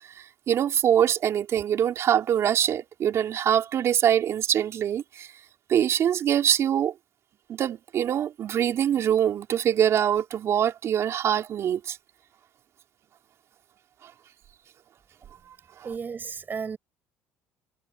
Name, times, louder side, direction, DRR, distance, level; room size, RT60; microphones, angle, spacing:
voice 1, 0.1-5.3 5.7-6.9 7.5-12.0 15.8-15.9, right 9 dB, 55° right, 4.2 m, -24 dB
voice 2, 15.8-16.8, right 6 dB, 35° right, 5.8 m, -33 dB
supercardioid pair, 85°, 6 cm